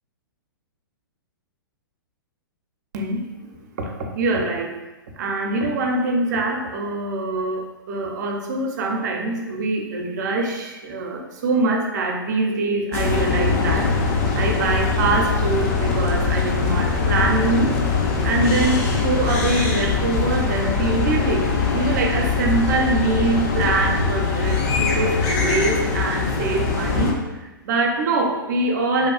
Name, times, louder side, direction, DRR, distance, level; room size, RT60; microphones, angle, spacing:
voice 1, 2.9-4.8 5.2-18.0 18.2-29.1, right 2 dB, 50° right, 2 dB, 0.5 m, -24 dB
sound 1, 12.9-27.1, left 4 dB, 45° left, 0.4 m, -22 dB
3.0 x 2.3 x 2.3 m, 1.1 s
figure-of-eight pair, 110°, 12 cm